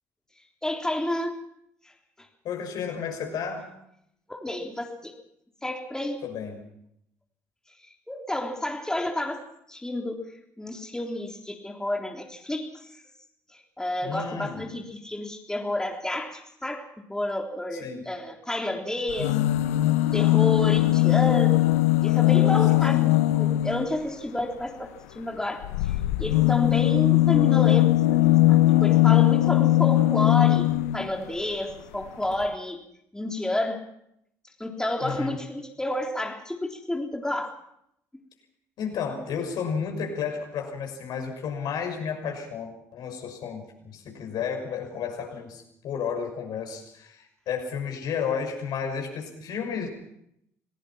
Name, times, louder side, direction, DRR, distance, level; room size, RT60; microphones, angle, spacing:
voice 1, 0.6-1.4 4.3-5.1 5.6-6.2 8.1-9.4 9.7-10.2 10.6-12.7 13.8-19.3 20.1-21.7 22.0-23.1 23.3-24.9 25.2-25.6 26.2-28.2 28.5-32.8 33.1-33.8 34.6-37.6, left 1 dB, 10° left, 1 dB, 3.5 m, -30 dB
voice 2, 2.4-3.7 6.2-6.6 14.0-14.6 17.7-18.0 22.9-23.2 35.0-35.4 38.8-49.9, left 6 dB, 60° left, 3 dB, 6.2 m, -32 dB
sound 1, 19.1-24.0 25.6-31.1 32.0-32.1 32.3-32.4, left 16 dB, 80° left, 0.8 m, -20 dB
27.0 x 18.5 x 5.9 m, 0.75 s
hypercardioid pair, 55°, 8 cm